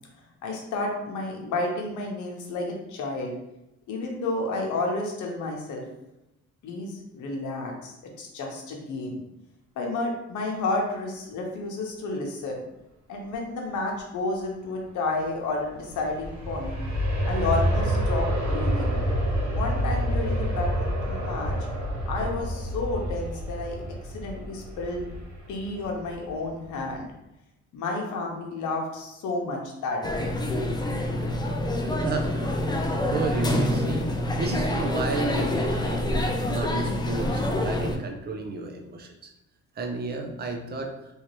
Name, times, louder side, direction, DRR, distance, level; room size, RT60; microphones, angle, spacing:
voice 1, 0.4-3.3 3.9-5.8 6.6-9.2 9.8-12.6 13.1-16.8 17.3-19.0 19.5-21.5 22.1-23.8 24.0-25.1 25.5-27.1 27.7-30.3, left 2 dB, 80° left, 0 dB, 0.9 m, -31 dB
Aircraft, 15.7-26.5 26.9-27.0, equal, 65° right, 1.0 m, -28 dB
sound 1, 30.0-38.0, left 1 dB, 15° left, 0.4 m, -26 dB
voice 2, 32.0-39.1 39.8-41.0, right 3 dB, 35° right, 3 dB, 0.6 m, -33 dB
3.2 x 2.8 x 3.0 m, 0.91 s
cardioid pair, 90°, 30 cm